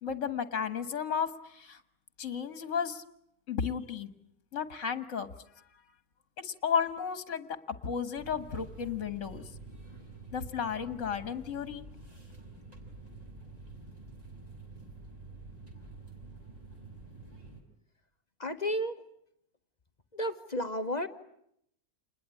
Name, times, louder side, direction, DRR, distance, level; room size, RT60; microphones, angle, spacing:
voice 1, 0.0-1.8 2.2-3.0 3.5-4.1 4.5-5.3 6.4-7.5 7.8-9.4 10.3-11.9, left 7 dB, 55° left, 11 dB, 1.8 m, -33 dB
sound 1, 8.1-17.6, right 3 dB, 25° right, 5.5 m, -48 dB
voice 2, 18.4-19.0 20.1-21.1, equal, 30° left, 8 dB, 1.2 m, -32 dB
28.5 x 21.0 x 9.8 m, 0.75 s
omnidirectional pair, 1.6 m